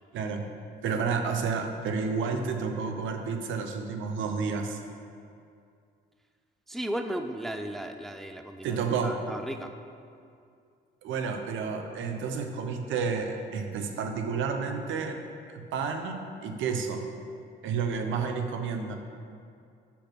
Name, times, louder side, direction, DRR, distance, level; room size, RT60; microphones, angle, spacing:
voice 1, 0.1-0.5 0.8-4.8 8.6-9.2 11.0-15.2 15.5-17.0 17.6-19.0, right 5 dB, 80° right, 5 dB, 0.7 m, -30 dB
voice 2, 6.7-8.8 9.0-9.7, right 1 dB, ahead, 6 dB, 0.3 m, -35 dB
5.8 x 4.2 x 5.9 m, 2.4 s
cardioid pair, 90°, 20 cm